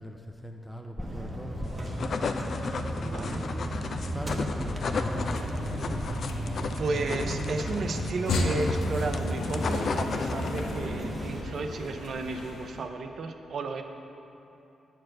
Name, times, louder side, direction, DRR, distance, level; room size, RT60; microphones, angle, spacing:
voice 1, 0.0-2.1 3.0-3.8 4.1-6.2, equal, ahead, 2 dB, 0.5 m, -40 dB
sound 1, 1.0-11.4, equal, 30° right, 0.9 m, -34 dB
sound 2, 1.7-10.8, left 4 dB, 60° left, 0.4 m, -35 dB
voice 2, 3.0-3.5 6.8-13.8, right 3 dB, 65° right, 6 dB, 0.6 m, -33 dB
sound 3, 5.0-12.9, left 2 dB, 90° left, 0.8 m, -35 dB
7.4 x 4.6 x 6.4 m, 2.9 s
cardioid pair, 80°, 0 cm